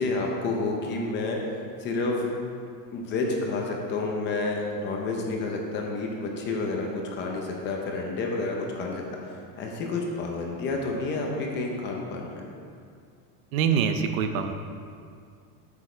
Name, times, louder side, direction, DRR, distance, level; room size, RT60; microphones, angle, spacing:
voice 1, 0.0-1.4 1.8-2.3 2.9-12.4, left 3 dB, 25° left, 0 dB, 0.7 m, -30 dB
voice 2, 13.5-14.5, right 7 dB, 60° right, 7 dB, 0.7 m, -24 dB
8.1 x 7.2 x 4.4 m, 2.2 s
cardioid pair, 180°, 47 cm